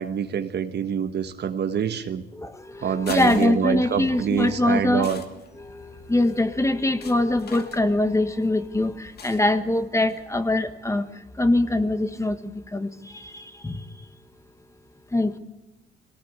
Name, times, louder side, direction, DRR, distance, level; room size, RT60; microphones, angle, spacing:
voice 1, 0.0-2.2 2.8-5.2, right 8 dB, 60° right, 9 dB, 1.5 m, -26 dB
voice 2, 2.3-5.1 5.6-13.8 15.1-15.4, left 2 dB, 15° left, 10 dB, 1.5 m, -23 dB
sound 1, 2.7-10.6, left 5 dB, 55° left, 2.4 m, -45 dB
23.5 x 18.0 x 8.3 m, 1.0 s
cardioid pair, 90°, 20 cm